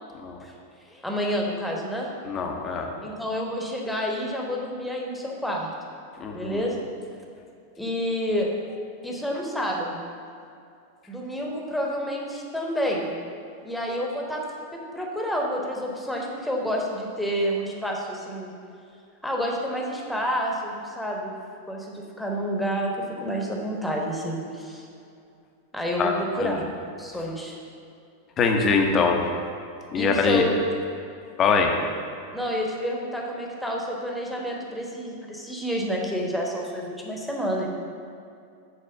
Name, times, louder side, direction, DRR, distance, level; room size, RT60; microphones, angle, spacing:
voice 1, 0.9-2.1 3.0-5.7 6.3-6.8 7.8-8.5 9.0-10.0 11.1-13.1 13.6-14.4 14.7-18.5 19.2-21.3 21.7-22.9 23.2-24.9 25.7-27.6 29.9-30.6 32.3-37.7, equal, ahead, -1 dB, 1.3 m, -29 dB
voice 2, 2.3-2.9 6.2-6.6 26.0-26.1 26.4-26.6 28.4-29.3 29.9-30.4 31.4-31.7, left 5 dB, 30° left, 2 dB, 0.9 m, -23 dB
7.7 x 4.2 x 6.6 m, 2.5 s
figure-of-eight pair, 90°, 0 cm